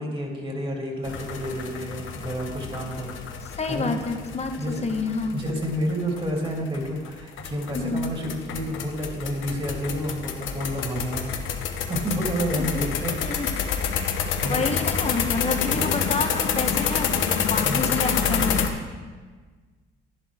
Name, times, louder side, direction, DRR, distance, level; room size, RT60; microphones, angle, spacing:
voice 1, 0.0-3.1 3.7-3.9 4.6-5.0 5.3-11.5 11.9-13.2 13.9-14.6 15.6-15.9 17.6-18.0, equal, 30° right, 0 dB, 2.7 m, -30 dB
sound 1, 1.0-18.7, left 7 dB, 75° left, 0.9 m, -28 dB
voice 2, 3.4-5.4 7.7-8.1 12.6-12.9 13.2-13.5 14.4-18.6, left 4 dB, 35° left, 5 dB, 1.1 m, -29 dB
11.0 x 11.0 x 3.5 m, 1.4 s
cardioid pair, 90°, 20 cm